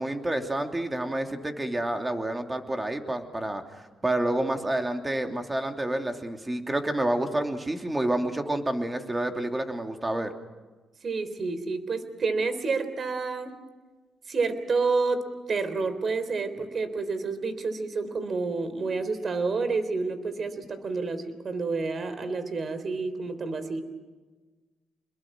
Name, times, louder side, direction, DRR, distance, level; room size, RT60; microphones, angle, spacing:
voice 1, 0.0-10.3, right 1 dB, 15° right, 4 dB, 3.0 m, -29 dB
voice 2, 11.0-13.6 14.3-23.8, right 4 dB, 45° right, 11 dB, 3.6 m, -29 dB
28.0 x 21.5 x 6.3 m, 1.3 s
cardioid pair, 90°, 0 cm